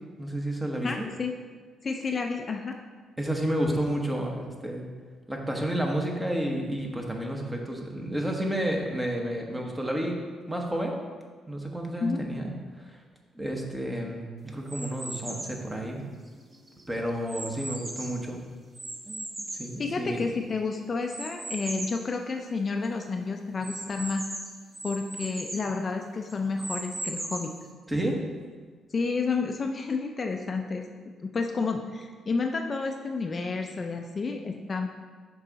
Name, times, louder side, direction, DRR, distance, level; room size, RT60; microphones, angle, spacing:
voice 1, 0.2-1.1 3.2-4.9 5.3-10.2 10.5-10.9 11.5-13.0 13.4-16.1 16.9-18.4 19.1-20.2 27.9-28.2, right 1 dB, 10° right, 1 dB, 1.1 m, -31 dB
voice 2, 0.8-1.3 1.8-2.7 12.0-12.2 19.8-24.2 24.8-27.6 28.9-34.9, left 4 dB, 40° left, 3 dB, 0.5 m, -30 dB
sound 1, 14.7-15.6 16.3-18.3 18.8-20.4 21.1-22.1 22.5-22.6 22.8-22.9 23.6-25.7 26.3-27.6, right 2 dB, 30° right, 1.0 m, -38 dB
6.7 x 4.7 x 4.0 m, 1.5 s
cardioid pair, 90°, 0 cm